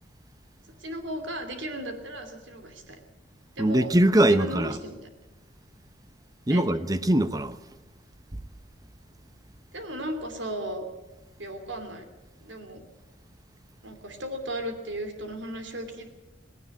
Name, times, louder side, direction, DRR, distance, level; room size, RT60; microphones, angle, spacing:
voice 1, 0.8-3.0 3.6-3.9 4.3-5.0 6.5-6.6 9.7-10.8 11.4-12.1 12.4-12.8 13.8-16.1, right 1 dB, 80° right, 2.8 m, -35 dB
voice 2, 3.6-4.8 6.5-7.6 8.3-8.4, right 1 dB, 20° right, 0.8 m, -22 dB
18.5 x 17.0 x 8.3 m
head